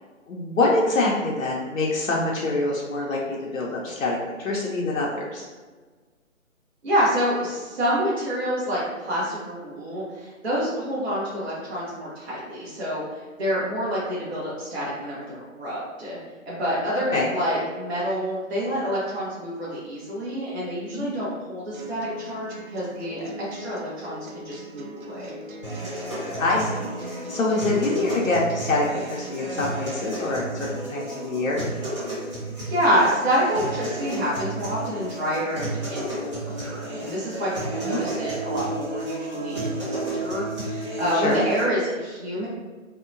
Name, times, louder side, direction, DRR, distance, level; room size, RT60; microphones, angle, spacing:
voice 1, 0.3-5.5 17.1-17.3 20.9-21.1 26.4-31.7 37.8-38.0 41.1-41.4, left 2 dB, 70° left, -3 dB, 0.6 m, -25 dB
voice 2, 6.8-16.2 16.5-25.4 32.7-42.5, equal, 50° right, -8 dB, 0.8 m, -27 dB
sound 1, 21.7-29.7, right 1 dB, 80° right, 0.6 m, -40 dB
sound 2, 25.6-41.6, right 1 dB, 25° right, 0.7 m, -32 dB
2.8 x 2.1 x 2.5 m, 1.4 s
hypercardioid pair, 170°, 41 cm